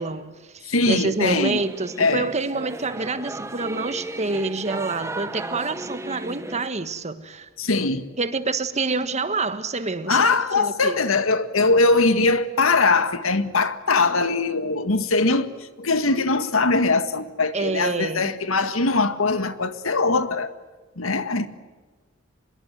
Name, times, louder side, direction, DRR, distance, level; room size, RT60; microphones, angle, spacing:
voice 1, 0.0-7.5 8.2-10.2 10.6-11.0 17.5-18.3, right 3 dB, 35° right, 1.5 m, -27 dB
voice 2, 0.7-1.6 2.0-2.3 7.6-8.0 10.1-20.5 21.0-21.5, left 3 dB, 80° left, 1.8 m, -21 dB
Singing / Musical instrument, 1.2-6.7, right 2 dB, 15° right, 1.0 m, -35 dB
25.5 x 22.0 x 9.3 m
head